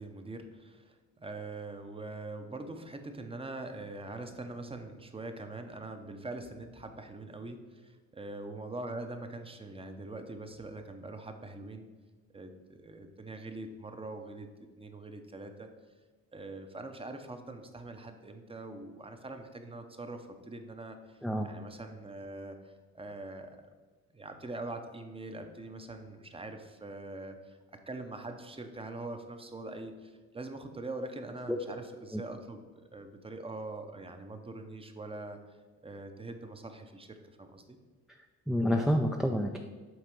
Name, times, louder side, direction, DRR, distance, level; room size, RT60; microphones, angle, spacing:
voice 1, 0.0-11.9 12.3-15.7 16.3-23.6 24.1-32.6 32.9-35.4 35.8-37.8, right 2 dB, 20° right, 6 dB, 0.8 m, -43 dB
voice 2, 38.5-39.6, equal, ahead, 2 dB, 0.4 m, -28 dB
7.8 x 3.6 x 5.3 m, 1.4 s
cardioid pair, 90°, 30 cm